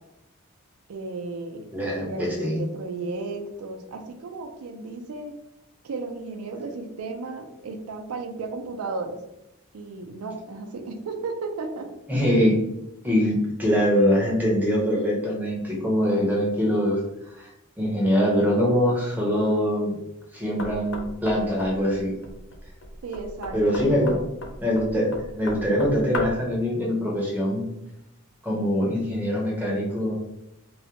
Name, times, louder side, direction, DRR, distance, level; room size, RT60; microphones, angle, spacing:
voice 1, 0.9-5.4 5.8-9.2 9.7-11.9 23.0-24.3, right 3 dB, 90° right, 5 dB, 0.4 m, -34 dB
voice 2, 1.7-2.6 12.1-12.5 13.0-17.5 17.8-20.0 20.3-22.2 23.5-24.2 24.6-25.1 25.3-27.6 28.4-30.2, equal, 10° right, -3 dB, 0.5 m, -23 dB
Knock, 20.6-26.5, left 1 dB, 60° left, 0.4 m, -37 dB
2.3 x 2.1 x 2.8 m, 0.87 s
head